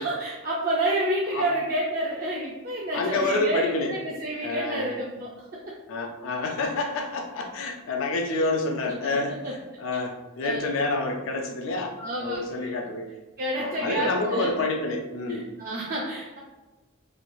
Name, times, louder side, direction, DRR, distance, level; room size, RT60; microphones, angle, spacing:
voice 1, 0.0-5.7 8.2-8.5 9.0-9.5 10.4-10.6 12.0-12.7 13.4-14.5 15.3-16.4, right 1 dB, 45° right, -4 dB, 0.4 m, -29 dB
voice 2, 2.9-3.9 4.4-4.9 5.9-9.3 9.8-13.1 13.6-15.5, left 2 dB, 70° left, 3 dB, 0.3 m, -28 dB
3.1 x 2.3 x 2.5 m, 1.2 s
head